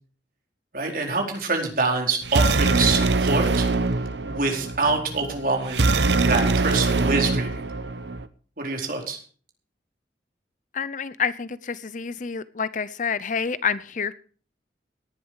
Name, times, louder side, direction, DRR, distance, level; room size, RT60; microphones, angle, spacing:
voice 1, 0.7-3.7 4.2-7.5 8.6-9.2, right 3 dB, 55° right, 2 dB, 4.4 m, -25 dB
sound 1, 2.2-8.2, right 3 dB, 80° right, 1.0 m, -23 dB
voice 2, 10.7-14.1, left 6 dB, 45° left, 16 dB, 0.7 m, -28 dB
18.0 x 10.5 x 4.7 m, 0.42 s
head